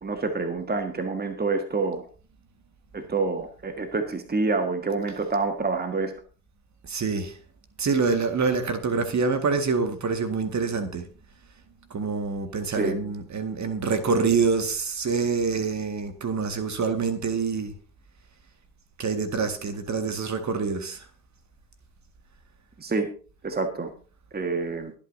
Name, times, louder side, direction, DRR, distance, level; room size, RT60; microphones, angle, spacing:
voice 1, 0.0-2.1 2.9-6.2 12.8-13.0 22.8-23.1 23.4-23.9 24.3-24.9, right 3 dB, 20° right, 7 dB, 1.6 m, -27 dB
voice 2, 6.8-7.4 7.8-11.1 11.9-17.7 19.0-21.0, right 4 dB, 35° right, 8 dB, 1.9 m, -26 dB
23.0 x 8.8 x 2.7 m, 0.38 s
figure-of-eight pair, 50°, 47 cm